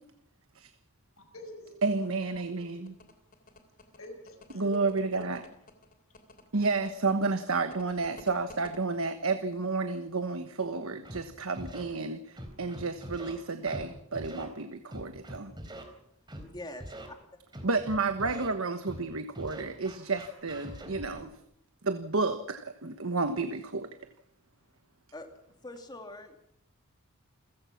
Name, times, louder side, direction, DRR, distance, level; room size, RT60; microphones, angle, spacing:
voice 1, 1.2-2.0 3.9-5.3 5.8-5.9, left 1 dB, 70° left, 6 dB, 5.5 m, -46 dB
voice 2, 1.8-2.9 4.5-5.4 6.5-15.5 17.6-21.3 21.8-24.0, right 3 dB, 75° right, 9 dB, 1.3 m, -31 dB
sound 1, 2.9-8.8, left 2 dB, 40° left, 3.2 m, -52 dB
Scratching (performance technique), 11.1-11.2 11.5-11.8 12.4-13.3 13.7-13.8 14.1-14.5 14.9-15.8 16.3-16.4 16.8-17.1 17.5-18.5 18.9-19.0 19.3-21.2, right 1 dB, 20° right, 3.9 m, -42 dB
voice 3, 16.4-17.2 18.2-18.5 25.1-25.3 25.6-26.4, left 1 dB, 20° left, 5 dB, 2.5 m, -44 dB
28.5 x 16.0 x 6.0 m, 0.77 s
head